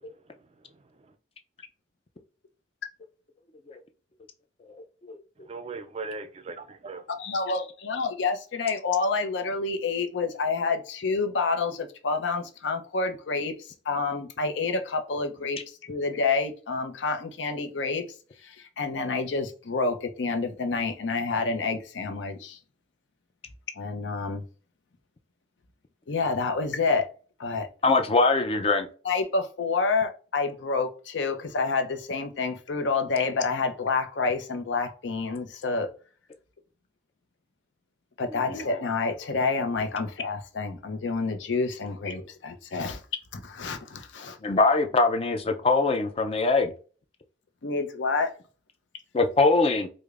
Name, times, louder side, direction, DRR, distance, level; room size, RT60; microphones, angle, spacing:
voice 1, 0.7-1.1 5.4-7.0, right 3 dB, 35° right, 0.4 m, -39 dB
voice 2, 7.2-18.0 18.4-22.6 23.8-24.4 26.1-27.1 27.4-27.7 29.0-35.9 38.2-43.0 43.3-44.4 47.6-48.3, left 4 dB, 80° left, 0.6 m, -28 dB
voice 3, 27.8-28.9 38.5-38.6 44.4-46.7 49.1-49.9, left 3 dB, 30° left, 0.4 m, -22 dB
4.8 x 2.1 x 2.4 m
head